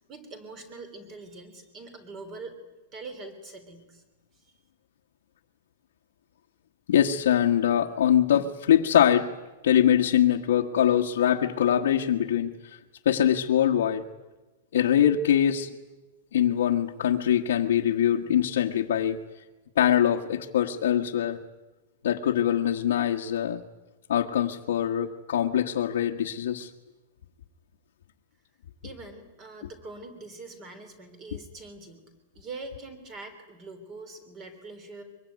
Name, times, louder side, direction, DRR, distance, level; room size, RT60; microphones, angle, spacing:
voice 1, 0.0-2.6 2.9-4.0 28.8-32.0 32.3-35.0, right 3 dB, 20° right, 9 dB, 3.3 m, -43 dB
voice 2, 6.9-9.3 9.6-12.8 13.0-14.0 14.7-15.7 16.3-19.2 19.7-21.4 22.0-23.6 24.1-26.7, left 10 dB, 75° left, -2 dB, 1.5 m, -23 dB
23.5 x 23.0 x 9.6 m, 1.1 s
supercardioid pair, 175°, 0 cm